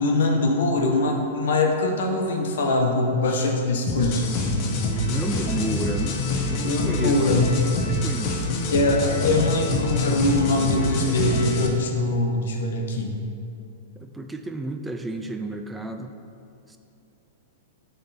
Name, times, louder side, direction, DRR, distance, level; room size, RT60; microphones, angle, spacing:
voice 1, 0.0-4.2 6.6-7.5 8.7-13.1, left 2 dB, 70° left, 2 dB, 1.0 m, -22 dB
sound 1, 3.9-11.7, left 2 dB, 40° left, 0.9 m, -26 dB
voice 2, 5.0-6.2 6.5-7.5 7.8-8.6 14.0-16.1 16.7-16.8, right 2 dB, 10° right, 5 dB, 0.4 m, -31 dB
10.0 x 3.5 x 4.3 m, 2.5 s
hypercardioid pair, 120°, 0 cm